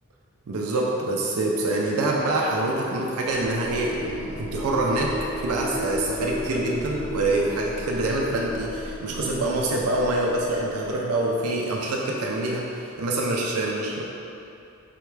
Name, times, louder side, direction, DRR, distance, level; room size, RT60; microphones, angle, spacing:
voice 1, 0.5-14.0, right 2 dB, 85° right, -2 dB, 0.5 m, -25 dB
sound 1, 3.3-11.1, left 1 dB, 20° left, 0.5 m, -35 dB
4.2 x 3.4 x 3.2 m, 2.7 s
head